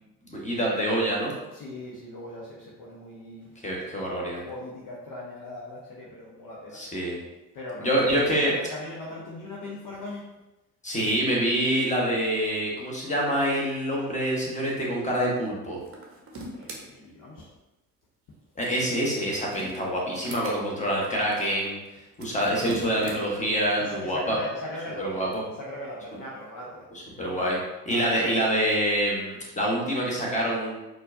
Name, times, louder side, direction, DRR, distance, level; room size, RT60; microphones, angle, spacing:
voice 1, 0.3-1.3 3.6-4.4 6.7-7.2 7.8-8.5 10.8-15.8 18.6-21.8 22.2-24.4 25.0-25.4 27.2-27.6 27.8-30.8, equal, 15° left, -3 dB, 1.3 m, -26 dB
voice 2, 1.5-3.6 4.5-6.8 7.5-10.3 16.6-17.5 23.8-25.3 25.6-27.6 27.9-28.4, left 1 dB, 45° left, -4 dB, 0.9 m, -40 dB
sound 1, 15.8-16.8 19.1-20.6 22.1-23.2, right 1 dB, 30° right, 0.9 m, -40 dB
4.3 x 2.4 x 2.6 m, 1.0 s
figure-of-eight pair, 50°, 46 cm